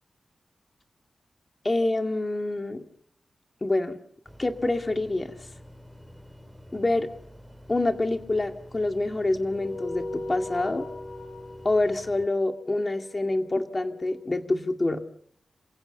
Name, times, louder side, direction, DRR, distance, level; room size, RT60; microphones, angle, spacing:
voice 1, 1.6-2.8 3.6-4.0 4.4-5.3 6.7-7.1 7.7-10.9 11.6-15.0, left 2 dB, 30° left, 6 dB, 2.2 m, -26 dB
sound 1, 4.3-12.3, left 1 dB, ahead, 3.6 m, -48 dB
sound 2, 9.5-14.3, left 2 dB, 75° left, 4.2 m, -39 dB
27.5 x 16.0 x 7.1 m, 0.68 s
wide cardioid pair, 80°, 0 cm